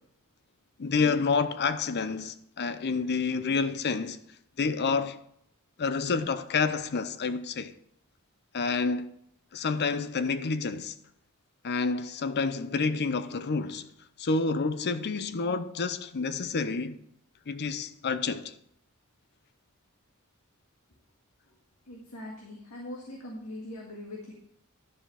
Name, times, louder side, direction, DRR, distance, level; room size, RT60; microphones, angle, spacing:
voice 1, 0.8-4.2 4.6-5.2 5.8-7.7 8.5-9.1 9.5-10.9 11.6-13.9 14.2-17.0 17.5-18.5, left 4 dB, 50° left, 0.6 m, -29 dB
voice 2, 21.9-24.3, left 1 dB, 85° left, 1.9 m, -41 dB
11.5 x 5.0 x 5.8 m
head